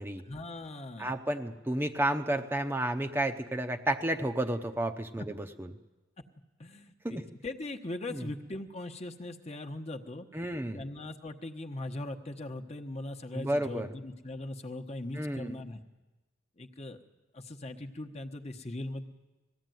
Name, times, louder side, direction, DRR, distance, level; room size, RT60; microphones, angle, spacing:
voice 1, 0.2-1.1 6.6-10.3 10.7-15.8 16.6-17.0 17.3-19.1, left 2 dB, 35° left, 4 dB, 1.1 m, -40 dB
voice 2, 1.0-5.7 7.0-7.2 8.1-8.3 10.3-10.8 13.3-13.9 15.1-15.6, right 1 dB, 10° right, 5 dB, 0.8 m, -31 dB
20.5 x 15.0 x 9.3 m, 1.1 s
head